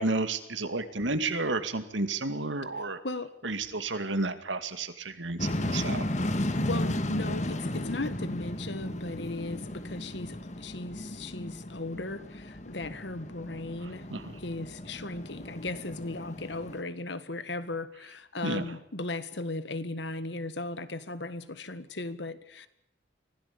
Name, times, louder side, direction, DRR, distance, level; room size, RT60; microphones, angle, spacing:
voice 1, 0.0-3.0 3.4-6.0 14.1-14.3 18.4-18.7, right 2 dB, 80° right, 10 dB, 2.3 m, -31 dB
Diesellocomotief aan Sint-Kruis-Winkel, 5.4-16.8, left 1 dB, 40° left, 1.6 m, -34 dB
voice 2, 6.3-14.1 14.4-22.7, left 2 dB, 70° left, 13 dB, 1.6 m, -37 dB
24.5 x 17.0 x 8.5 m, 0.78 s
head